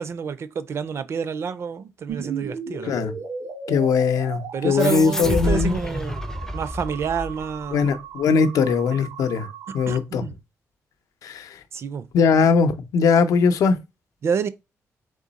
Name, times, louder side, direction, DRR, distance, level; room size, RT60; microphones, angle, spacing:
voice 1, 0.0-3.1 4.5-6.2 6.5-7.9 8.6-9.0 9.9-10.3 11.7-12.1 14.2-14.5, right 6 dB, 50° right, 0.4 m, -28 dB
sound 1, 2.1-10.0, right 6 dB, 90° right, 1.3 m, -36 dB
voice 2, 2.8-3.1 3.7-5.8 7.7-9.5 9.7-10.2 11.2-11.5 12.1-13.8, left 5 dB, 85° left, 0.6 m, -20 dB
sound 2, 4.8-7.8, left 1 dB, 10° left, 0.4 m, -29 dB
3.7 x 3.1 x 4.0 m
cardioid pair, 135°, 6 cm